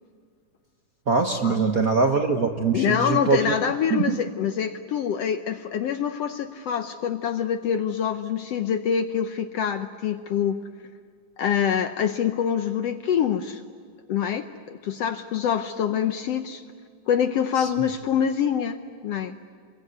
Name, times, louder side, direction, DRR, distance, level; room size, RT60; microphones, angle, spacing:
voice 1, 1.1-3.5 3.9-4.2 17.6-17.7, right 4 dB, 65° right, 5 dB, 0.8 m, -23 dB
voice 2, 2.7-10.6 11.4-13.6 14.1-16.6 17.1-18.8 19.0-19.3, left 8 dB, 70° left, 8 dB, 1.5 m, -25 dB
28.0 x 22.0 x 9.4 m, 2.1 s
omnidirectional pair, 3.7 m